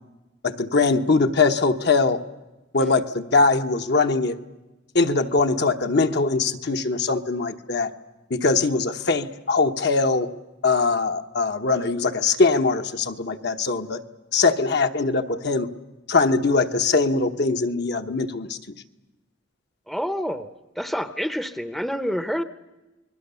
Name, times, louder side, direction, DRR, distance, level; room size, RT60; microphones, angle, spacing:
voice 1, 0.4-2.2 2.7-4.4 4.9-7.9 8.3-10.3 10.6-14.0 14.3-15.7 16.1-18.6, left 3 dB, 55° left, 7 dB, 1.1 m, -21 dB
voice 2, 19.9-20.5 20.8-22.4, equal, ahead, 11 dB, 0.7 m, -28 dB
29.0 x 21.0 x 7.0 m, 1.1 s
head